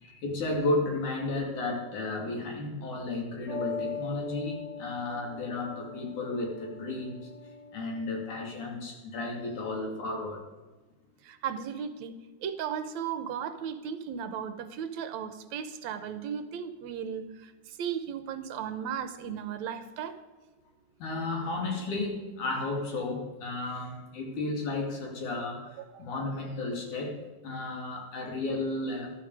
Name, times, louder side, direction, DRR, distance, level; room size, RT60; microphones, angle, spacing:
voice 1, 0.0-7.3 7.7-10.4 21.0-25.7 26.0-29.1, left 2 dB, 80° left, 1 dB, 4.0 m, -33 dB
sound 1, 3.5-8.7, left 5 dB, 35° left, 3.0 m, -41 dB
voice 2, 11.2-12.1 12.4-17.3 17.8-20.1 25.8-26.0, right 8 dB, 75° right, 11 dB, 2.1 m, -35 dB
13.5 x 12.5 x 4.8 m, 1.2 s
omnidirectional pair, 3.4 m